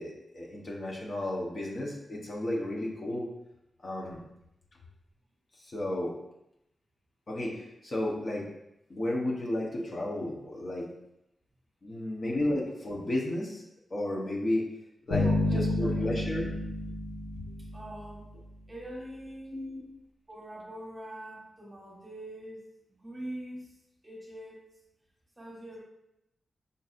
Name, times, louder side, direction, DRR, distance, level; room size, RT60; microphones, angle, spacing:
voice 1, 0.0-3.3 3.8-4.2 5.6-6.1 7.3-8.5 8.9-10.9 11.8-13.6 13.9-14.7 15.1-16.5 19.5-19.8, left 1 dB, 40° left, -2 dB, 0.9 m, -33 dB
Bass guitar, 15.1-18.2, left 1 dB, 75° left, 1.5 m, -30 dB
voice 2, 15.2-16.5 17.7-18.3 18.7-19.5 20.3-23.7 24.0-24.7 25.4-25.8, right 1 dB, 15° right, -3 dB, 1.3 m, -43 dB
5.3 x 4.0 x 2.5 m, 0.85 s
wide cardioid pair, 120°, 0 cm